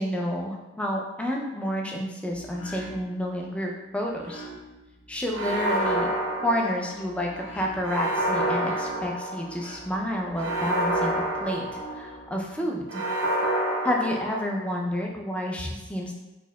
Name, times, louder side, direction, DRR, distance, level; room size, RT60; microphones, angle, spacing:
voice 1, 0.0-4.4 5.1-6.1 6.4-13.0 13.8-16.1, equal, 5° left, 0 dB, 0.4 m, -30 dB
sound 1, 2.3-12.3, right 1 dB, 70° left, 0.8 m, -45 dB
sound 2, 5.3-7.2 7.8-9.7 10.4-12.2 12.9-14.8, right 1 dB, 85° right, 0.7 m, -28 dB
4.3 x 2.7 x 2.2 m, 1.1 s
head